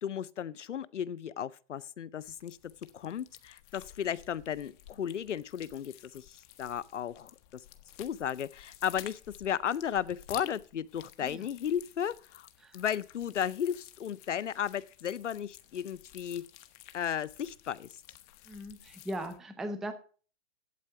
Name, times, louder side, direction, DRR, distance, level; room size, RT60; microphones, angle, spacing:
voice 1, 0.0-2.6 2.9-7.6 8.0-12.5 12.7-16.4 16.9-17.9, left 9 dB, 90° left, 0.6 m, -34 dB
sound 1, 2.2-19.4, left 13 dB, 30° left, 0.9 m, -53 dB
voice 2, 18.4-19.9, right 1 dB, ahead, 0.4 m, -39 dB
8.4 x 8.4 x 5.6 m
hypercardioid pair, 125°, 35 cm